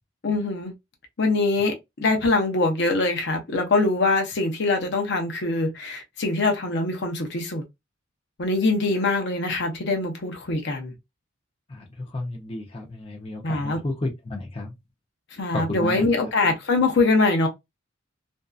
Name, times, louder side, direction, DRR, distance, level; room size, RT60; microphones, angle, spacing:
voice 1, 0.2-0.7 1.2-7.6 8.4-10.9 13.4-13.8 15.4-17.5, left 3 dB, 65° left, 0.7 m, -23 dB
voice 2, 12.1-14.7 15.5-16.0, left 2 dB, 30° left, 0.6 m, -31 dB
2.6 x 2.3 x 2.3 m
head